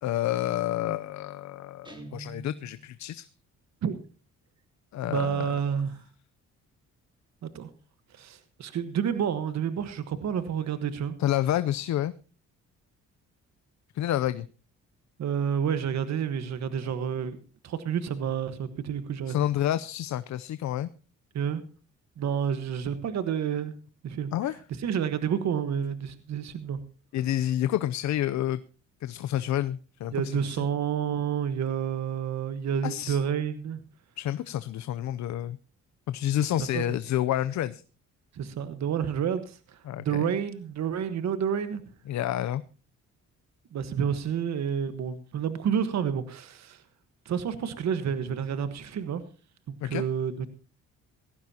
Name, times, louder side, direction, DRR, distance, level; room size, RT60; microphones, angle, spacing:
voice 1, 0.0-3.3 4.9-5.5 11.2-12.1 13.9-14.5 19.3-20.9 24.3-24.6 27.1-28.6 29.0-30.6 32.8-33.2 34.2-35.6 36.1-37.8 39.9-40.3 42.1-42.6 49.8-50.0, left 12 dB, 65° left, 13 dB, 0.6 m, -29 dB
Guitar, 1.8-3.0, right 2 dB, 15° right, 3.1 m, -44 dB
voice 2, 5.1-6.0 7.4-7.7 8.1-11.1 15.2-17.4 17.6-19.3 21.3-21.6 22.2-23.7 24.0-26.8 30.1-33.8 36.7-36.8 38.3-41.8 43.7-46.8 47.2-49.2 49.7-50.5, right 8 dB, 65° right, 11 dB, 1.4 m, -29 dB
18.5 x 15.0 x 2.9 m, 0.35 s
cardioid pair, 90°, 30 cm